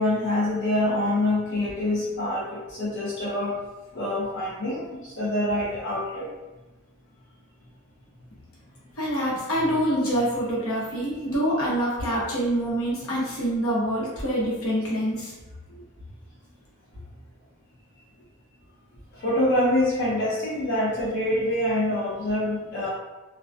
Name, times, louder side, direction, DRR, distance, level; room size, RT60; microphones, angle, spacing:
voice 1, 0.0-3.6 3.9-6.3 19.1-22.9, left 1 dB, 55° left, -7 dB, 0.5 m, -25 dB
voice 2, 9.0-15.3, equal, 90° left, -6 dB, 0.9 m, -25 dB
2.2 x 2.2 x 2.5 m, 1.1 s
head